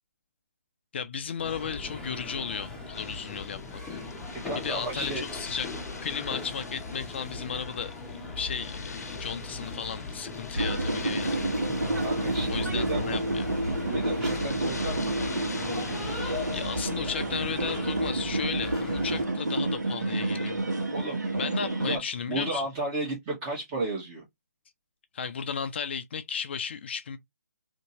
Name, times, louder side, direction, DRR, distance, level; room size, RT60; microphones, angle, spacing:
voice 1, 0.9-4.0 4.5-5.7 6.0-11.5 12.5-13.7 16.5-20.6 21.4-22.6 25.1-27.2, left 6 dB, 40° left, 0.4 m, -35 dB
sound 1, 1.4-19.3, left 3 dB, 5° left, 0.7 m, -38 dB
sound 2, 2.9-16.9, left 4 dB, 70° left, 0.7 m, -45 dB
voice 2, 4.4-5.2 12.0-13.0 13.8-15.2 20.9-21.2 21.8-22.0 22.3-24.2, right 2 dB, 20° right, 1.0 m, -33 dB
sound 3, 10.5-22.0, right 2 dB, 80° right, 1.5 m, -29 dB
2.8 x 2.7 x 2.7 m
figure-of-eight pair, 145°, 9 cm